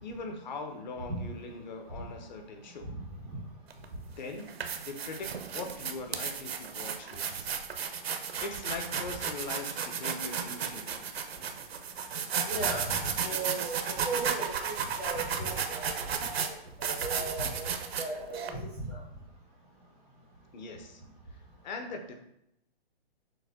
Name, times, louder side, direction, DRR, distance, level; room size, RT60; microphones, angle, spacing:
voice 1, 0.0-2.9 4.2-4.5 4.8-7.6 8.4-11.1 20.5-21.0 21.3-22.1, left 3 dB, 50° left, 4 dB, 0.7 m, -41 dB
sound 1, 3.7-3.8 4.4-18.5, right 7 dB, 85° right, 0.6 m, -34 dB
voice 2, 12.5-12.9 13.2-16.1 16.4-18.6 18.9-19.0, right 2 dB, 5° left, -11 dB, 0.3 m, -37 dB
6.3 x 2.2 x 3.6 m, 0.80 s
hypercardioid pair, 155°, 30 cm